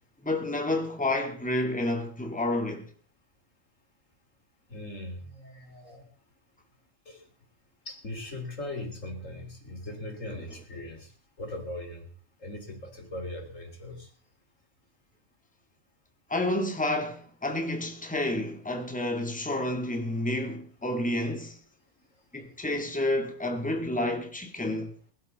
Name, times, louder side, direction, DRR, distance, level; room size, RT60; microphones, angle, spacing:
voice 1, 0.2-2.9 16.3-21.6 22.3-25.0, left 1 dB, 5° left, 2.0 m, -30 dB
voice 2, 4.7-6.1 7.1-7.2 7.9-11.1 11.4-12.0 12.4-14.1, left 1 dB, 85° left, 3.7 m, -39 dB
21.5 x 12.0 x 4.1 m
omnidirectional pair, 1.3 m